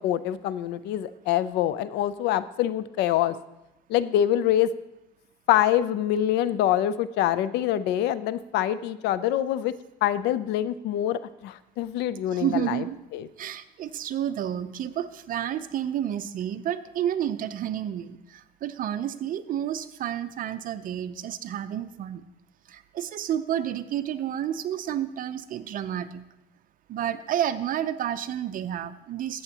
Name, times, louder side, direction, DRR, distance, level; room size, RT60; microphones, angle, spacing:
voice 1, 0.0-3.3 3.9-4.7 5.5-9.7 10.0-12.8 13.1-13.3, left 12 dB, 85° left, 15 dB, 0.5 m, -25 dB
voice 2, 12.3-13.0 13.4-22.2 22.7-26.2 26.9-29.4, right 10 dB, 55° right, 10 dB, 0.6 m, -30 dB
14.0 x 7.9 x 2.9 m, 0.95 s
cardioid pair, 110°, 17 cm